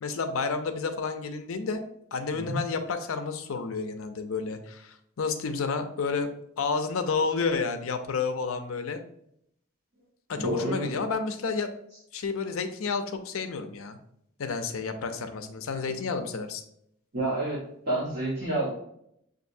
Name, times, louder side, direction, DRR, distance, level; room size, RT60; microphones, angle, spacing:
voice 1, 0.0-1.8 2.1-6.3 6.6-9.0 10.3-11.7 12.1-14.0 14.4-16.6, left 4 dB, 85° left, 7 dB, 0.5 m, -30 dB
voice 2, 10.3-10.9 17.1-18.7, right 1 dB, 50° right, -9 dB, 1.4 m, -29 dB
6.3 x 2.6 x 2.6 m, 0.73 s
head